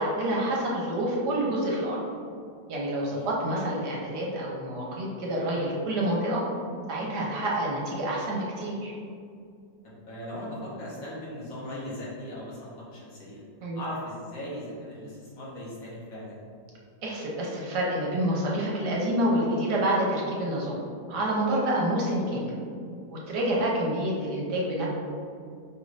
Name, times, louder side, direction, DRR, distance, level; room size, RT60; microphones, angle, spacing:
voice 1, 0.0-2.0 2.7-6.4 6.9-8.9 13.6-13.8 17.0-20.8 21.1-22.5 23.1-24.9, right 1 dB, 70° right, -3 dB, 1.2 m, -28 dB
voice 2, 3.0-3.3 9.8-13.4 13.7-16.4, left 1 dB, 55° left, -7 dB, 1.3 m, -39 dB
5.0 x 2.5 x 3.2 m, 2.3 s
omnidirectional pair, 2.0 m